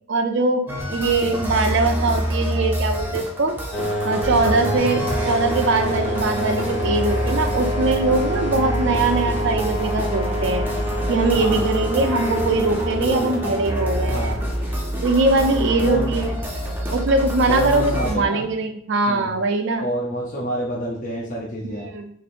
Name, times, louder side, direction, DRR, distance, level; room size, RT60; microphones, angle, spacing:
voice 1, 0.1-3.5 4.0-10.6 11.1-14.3 15.0-16.4 16.9-19.9 21.6-22.1, right 3 dB, 65° right, 6 dB, 0.5 m, -22 dB
sound 1, 0.7-18.1, equal, 10° right, 0.6 m, -27 dB
sound 2, 3.7-15.1, equal, 85° left, 1.0 m, -27 dB
sound 3, 9.4-15.5, equal, 65° left, 1.4 m, -38 dB
voice 2, 11.3-11.7 13.0-13.4 14.1-14.4 15.5-16.1 17.5-18.4 19.1-19.3 19.8-21.9, equal, 40° left, -4 dB, 0.6 m, -28 dB
4.8 x 2.6 x 2.5 m, 0.68 s
head